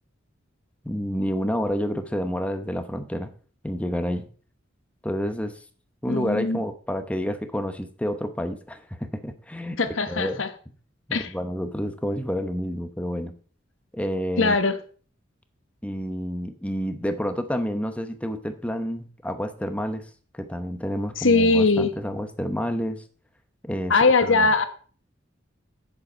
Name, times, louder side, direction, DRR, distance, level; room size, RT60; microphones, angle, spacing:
voice 1, 0.8-3.3 3.6-4.3 5.0-5.6 6.0-9.8 10.1-10.4 11.1-13.3 13.9-14.6 15.8-20.1 20.3-23.0 23.6-23.9 24.2-24.5, equal, 5° left, 8 dB, 0.8 m, -29 dB
voice 2, 6.1-6.6 9.8-10.5 11.1-11.3 14.4-14.8 21.2-21.9 23.9-24.6, left 3 dB, 80° left, 9 dB, 1.1 m, -20 dB
7.8 x 7.2 x 5.2 m, 0.42 s
head